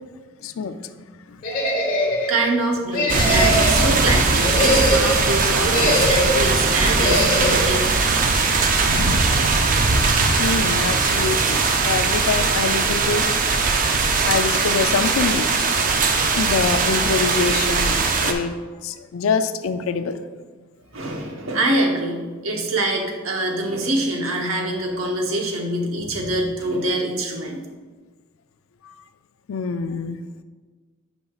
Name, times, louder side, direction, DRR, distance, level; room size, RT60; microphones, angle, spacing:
voice 1, 0.4-0.7 8.9-9.5 10.4-11.6 11.9-13.3 14.3-15.5 16.3-18.0 18.2-18.5 18.8-20.3 28.8-28.9 29.5-30.2, left 4 dB, 80° left, 11 dB, 0.4 m, -25 dB
sound 1, 1.4-2.4 2.9-3.9 4.3-5.2 5.7-6.5 7.0-7.7, equal, 45° left, 1.1 m, -21 dB
voice 2, 2.3-7.9 20.9-27.6, right 1 dB, 85° right, 1 dB, 1.0 m, -24 dB
sound 2, 3.1-18.3, right 4 dB, 40° right, 0.5 m, -20 dB
8.5 x 5.4 x 2.4 m, 1.4 s
head